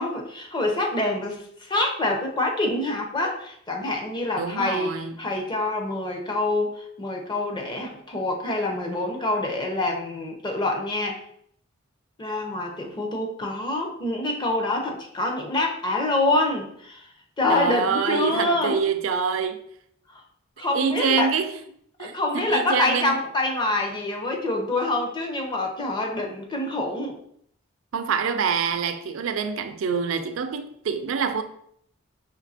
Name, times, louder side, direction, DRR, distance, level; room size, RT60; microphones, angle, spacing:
voice 1, 0.0-11.2 12.2-17.1 17.4-18.8 20.1-20.2 20.6-21.3 22.0-27.2, left 2 dB, 20° left, 0.6 m, -26 dB
voice 2, 4.4-5.1 17.5-19.6 20.6-21.5 22.0-23.1 27.9-31.4, right 6 dB, 70° right, 0.4 m, -26 dB
5.1 x 2.7 x 2.7 m
head